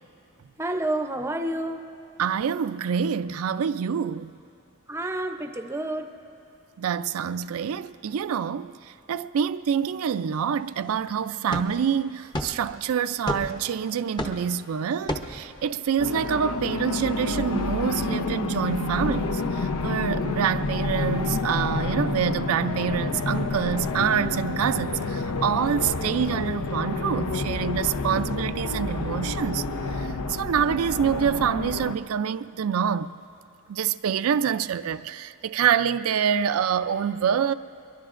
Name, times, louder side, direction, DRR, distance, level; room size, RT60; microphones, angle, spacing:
voice 1, 0.6-1.9 4.9-6.1, right 1 dB, 10° right, 0.6 m, -29 dB
voice 2, 2.2-4.3 6.8-8.7 9.1-29.6 29.9-33.1 33.7-37.5, right 8 dB, 70° right, 0.4 m, -26 dB
sound 1, 9.8-18.1 20.5-21.3, left 1 dB, 20° left, 0.8 m, -38 dB
sound 2, 16.0-32.0, left 3 dB, 85° left, 0.7 m, -29 dB
23.5 x 22.5 x 2.5 m
head